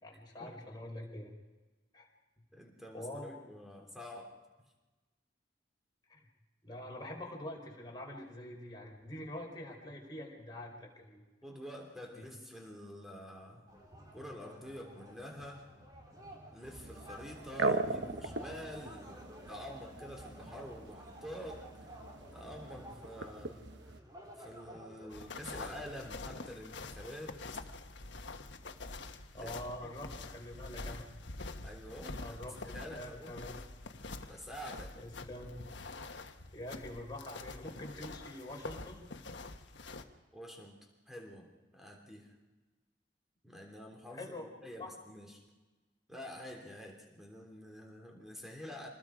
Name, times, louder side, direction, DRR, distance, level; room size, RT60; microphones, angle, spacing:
voice 1, 0.0-1.3 1.9-2.1 2.9-3.4 6.1-6.3 6.6-11.2 12.1-12.3 29.3-31.1 32.2-32.6 32.9-33.6 34.9-35.6 36.5-39.1 44.1-44.5 44.8-44.9, left 1 dB, 25° left, -1 dB, 4.6 m, -45 dB
voice 2, 2.5-4.3 11.4-13.6 14.1-15.7 16.5-21.7 22.3-24.0 24.4-27.4 29.4-29.9 31.6-33.3 34.3-34.9 40.3-40.8 41.1-41.5 41.7-42.3 43.4-45.4 46.1-48.9, equal, ahead, 0 dB, 3.3 m, -48 dB
sound 1, 13.7-25.9, right 1 dB, 20° right, 3.7 m, -53 dB
sound 2, 16.6-24.0, right 3 dB, 75° right, 1.2 m, -40 dB
sound 3, 25.1-40.0, left 3 dB, 75° left, 1.3 m, -46 dB
27.5 x 20.5 x 5.1 m, 1.2 s
head